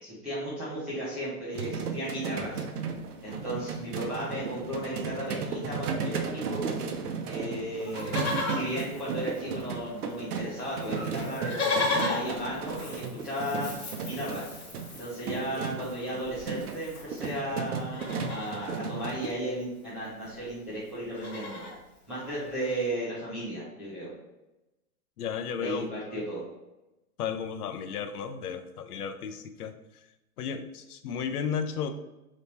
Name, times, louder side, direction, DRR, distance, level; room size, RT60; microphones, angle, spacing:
voice 1, 0.0-2.6 3.2-6.7 7.2-8.1 8.5-13.7 14.1-14.4 15.0-21.6 22.1-24.1 25.6-26.4, right 1 dB, ahead, -13 dB, 0.6 m, -35 dB
sound 1, 1.5-19.3, right 5 dB, 90° right, 0.8 m, -35 dB
Livestock farm animals working animals, 7.8-9.8 10.1-10.2 10.4-17.4 17.8-18.7 19.9-20.0 20.2-20.5 20.8-21.8 22.4-22.5, left 3 dB, 45° left, 1.3 m, -35 dB
voice 2, 25.2-25.9 27.2-29.7 30.4-31.9, left 7 dB, 85° left, 9 dB, 0.6 m, -33 dB
3.5 x 3.1 x 4.1 m, 0.96 s
hypercardioid pair, 170°, 44 cm